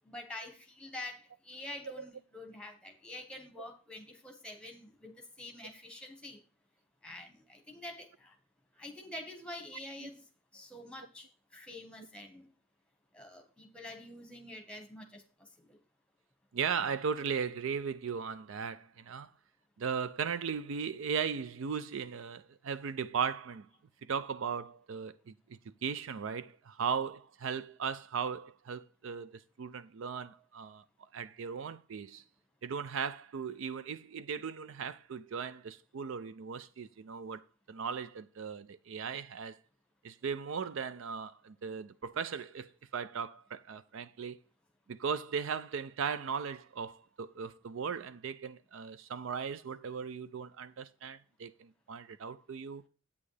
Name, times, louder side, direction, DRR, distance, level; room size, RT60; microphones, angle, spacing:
voice 1, 0.0-6.4 7.0-8.3 8.8-10.2 10.5-12.5 13.1-15.2 15.7-15.8, left 1 dB, 5° left, 1.3 m, -47 dB
voice 2, 16.5-19.3 19.8-23.7 24.0-32.2 32.6-39.6 40.0-44.4 44.9-52.8, right 6 dB, 60° right, 0.4 m, -37 dB
9.3 x 8.5 x 3.3 m
head